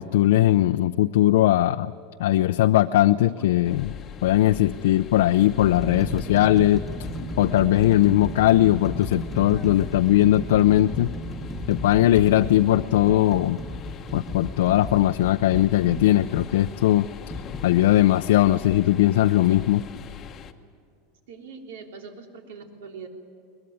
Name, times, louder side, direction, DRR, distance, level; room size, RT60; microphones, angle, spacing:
voice 1, 0.0-1.9 2.2-3.9 4.2-6.8 7.4-11.1 11.7-13.6 14.1-17.1 17.6-19.8, left 14 dB, 80° left, 8 dB, 0.6 m, -19 dB
sound 1, 3.3-3.5 4.4-4.6 5.2-16.5 17.3-17.5, equal, ahead, 1.4 m, -35 dB
sound 2, 3.6-20.5, left 7 dB, 20° left, 1.0 m, -40 dB
voice 2, 21.3-23.1, right 5 dB, 80° right, 3 dB, 3.6 m, -42 dB
22.5 x 21.0 x 9.5 m, 2.4 s
supercardioid pair, 180°, 0 cm